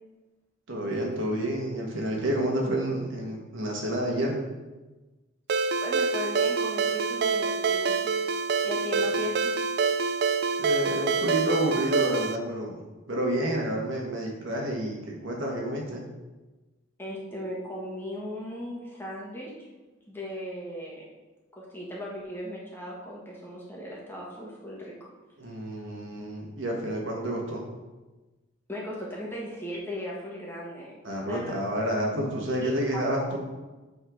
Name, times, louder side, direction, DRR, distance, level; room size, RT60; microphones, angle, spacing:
voice 1, 0.7-4.4 10.6-12.7 13.1-16.0 25.4-27.7 31.0-33.4, right 1 dB, 70° right, -1 dB, 1.5 m, -29 dB
Ringtone, 5.5-12.4, right 5 dB, 50° right, 0.3 m, -26 dB
voice 2, 5.8-8.2 8.6-9.5 17.0-19.7 20.1-21.1 21.5-25.1 28.7-31.6 32.5-33.0, left 1 dB, 10° left, -4 dB, 1.4 m, -37 dB
8.7 x 3.9 x 4.9 m, 1.2 s
head